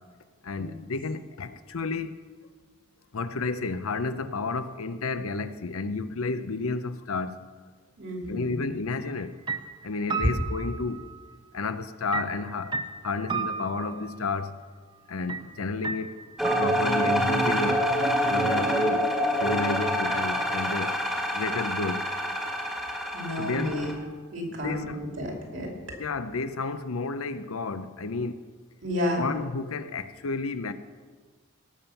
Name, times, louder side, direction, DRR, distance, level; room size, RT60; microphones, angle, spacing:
voice 1, 0.4-2.1 3.1-7.3 8.3-9.3 9.8-11.0 11.5-12.7 13.0-14.5 15.1-16.1 16.6-17.9 18.3-19.0 19.4-21.0 21.3-22.1 23.4-23.9 24.5-25.0 26.0-28.3 29.1-30.7, left 3 dB, 85° left, 0.7 m, -31 dB
voice 2, 8.0-8.6 23.1-23.9 24.3-25.7 28.8-29.3, left 1 dB, 55° right, 2.7 m, -31 dB
sound 1, 9.0-9.2 9.5-11.3 12.1-14.2 15.3-15.5 15.8-17.2, right 4 dB, 20° right, 0.4 m, -34 dB
sound 2, 16.4-23.9, equal, ahead, 1.4 m, -26 dB
18.0 x 7.1 x 5.7 m
head